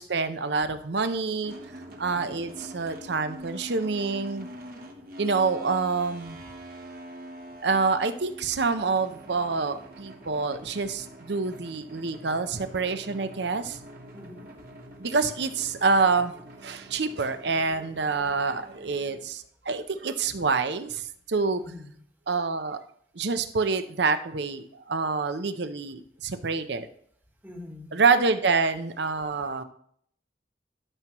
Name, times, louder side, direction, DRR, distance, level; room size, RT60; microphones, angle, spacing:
voice 1, 0.0-1.5 2.0-4.5 5.2-6.4 7.6-13.8 15.0-16.3 16.6-21.6 22.3-22.8 23.1-26.9 27.9-29.6, right 4 dB, 65° right, 10 dB, 0.7 m, -27 dB
sound 1, 1.4-19.3, right 1 dB, 50° right, 1.2 m, -45 dB
voice 2, 2.0-2.6 14.1-14.6 20.3-20.4 21.5-22.0 27.4-28.0, left 2 dB, 10° right, 2 dB, 1.2 m, -45 dB
12.0 x 6.0 x 3.0 m, 0.65 s
head